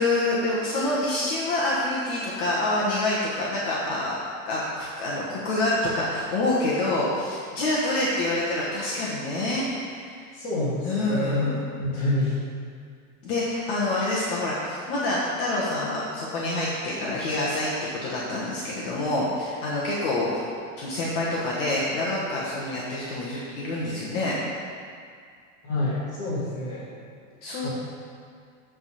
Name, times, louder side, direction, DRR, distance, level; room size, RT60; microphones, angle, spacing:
voice 1, 0.0-4.2 4.4-10.1 10.8-11.6 13.2-17.7 18.0-20.4 20.8-24.4 27.4-27.7, left 2 dB, 45° left, -6 dB, 1.2 m, -27 dB
voice 2, 10.3-12.3 25.6-26.8 27.6-27.7, left 1 dB, 30° left, -12 dB, 1.8 m, -27 dB
8.0 x 3.7 x 6.7 m, 2.2 s
supercardioid pair, 175°, 40 cm